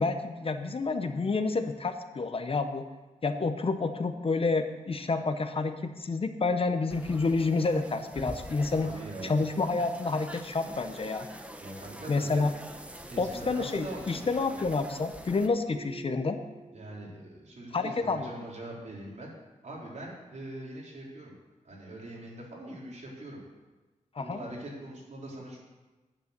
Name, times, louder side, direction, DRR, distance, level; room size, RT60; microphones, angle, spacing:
voice 1, 0.0-2.8 3.2-11.3 12.1-12.5 13.2-16.4 17.7-18.3 24.2-24.4, left 3 dB, 45° left, 8 dB, 0.8 m, -29 dB
sound 1, 6.9-15.5, right 1 dB, 10° right, 0.9 m, -45 dB
voice 2, 8.8-9.4 11.6-12.5 13.1-14.6 16.7-19.3 19.6-21.3 21.6-23.4 24.2-25.6, right 1 dB, 65° right, -4 dB, 3.6 m, -42 dB
sound 2, 15.7-17.4, right 3 dB, 90° right, 1.0 m, -48 dB
9.7 x 9.2 x 6.7 m, 1.2 s
wide cardioid pair, 145°, 13 cm